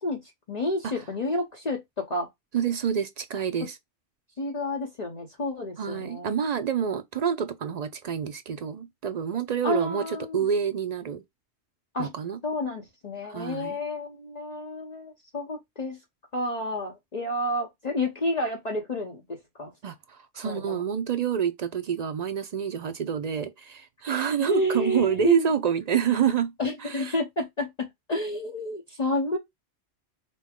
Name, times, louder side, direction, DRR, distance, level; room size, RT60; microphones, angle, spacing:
voice 1, 0.0-2.3 4.4-6.3 9.6-10.4 11.9-12.1 12.4-16.0 16.3-19.7 20.4-20.8 24.4-25.5 26.6-29.4, left 1 dB, 40° left, 0.9 m, -30 dB
voice 2, 2.5-3.8 5.8-11.2 12.0-12.4 13.2-13.8 19.8-26.5 26.8-27.2, right 8 dB, 60° right, 0.4 m, -27 dB
5.3 x 2.1 x 3.5 m
omnidirectional pair, 1.1 m